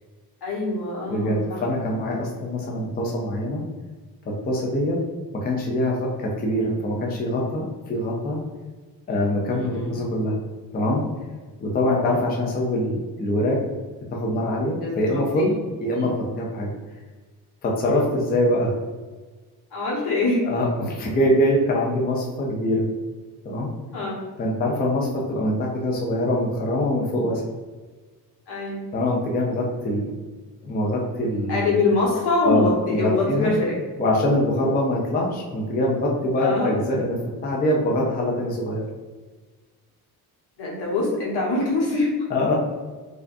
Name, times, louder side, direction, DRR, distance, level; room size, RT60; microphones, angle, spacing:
voice 1, 0.4-1.6 2.6-2.8 9.5-9.9 14.8-15.5 15.9-16.1 19.7-20.4 23.9-24.2 28.5-28.8 31.5-33.7 36.4-36.7 40.6-42.1, left 3 dB, 75° left, -4 dB, 1.4 m, -24 dB
voice 2, 1.1-3.6 4.3-5.0 5.4-8.4 9.1-10.3 10.7-11.0 11.6-13.6 14.1-16.7 17.6-18.7 20.4-22.9 23.4-23.7 24.4-27.4 28.9-30.1 30.6-31.7 32.4-33.5 34.0-37.1 37.4-38.9 42.3-42.5, left 1 dB, 25° left, -2 dB, 0.4 m, -24 dB
4.7 x 2.3 x 2.6 m, 1.3 s
cardioid pair, 175°, 39 cm